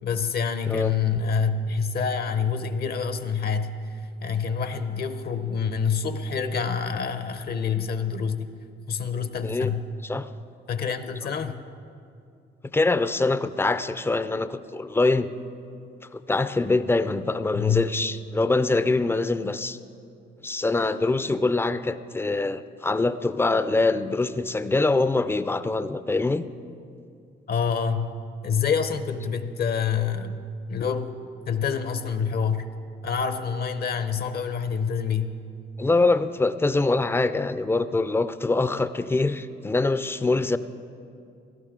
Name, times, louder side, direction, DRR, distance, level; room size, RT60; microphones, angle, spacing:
voice 1, 0.0-8.5 8.9-9.8 10.7-11.6 17.5-17.8 27.5-28.1 28.4-31.2 31.5-32.7 33.0-35.3, left 6 dB, 50° left, 10 dB, 0.8 m, -27 dB
voice 2, 12.7-15.3 16.1-19.8 20.4-26.4 35.8-40.6, left 3 dB, 10° left, 13 dB, 0.5 m, -24 dB
17.0 x 13.5 x 3.7 m, 2.5 s
cardioid pair, 90°, 20 cm